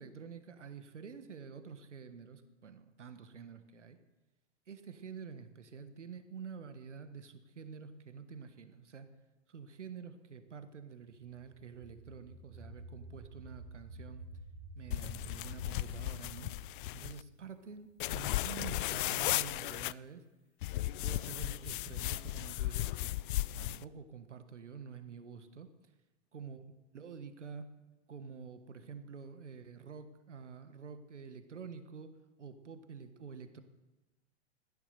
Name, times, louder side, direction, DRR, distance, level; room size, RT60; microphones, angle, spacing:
voice 1, 0.0-4.0 4.7-9.1 9.5-14.2 14.7-16.5 16.9-20.2 20.8-23.1 23.6-25.7 26.3-26.6 26.9-27.7 28.1-32.1 32.4-33.6, right 6 dB, 85° right, 9 dB, 1.5 m, -48 dB
sound 1, 11.5-17.9, right 2 dB, 65° right, 2.6 m, -51 dB
sound 2, 14.9-17.2 18.0-19.9 20.6-23.8, left 17 dB, 50° left, 0.4 m, -36 dB
15.0 x 10.5 x 6.7 m, 1.1 s
hypercardioid pair, 105°, 35 cm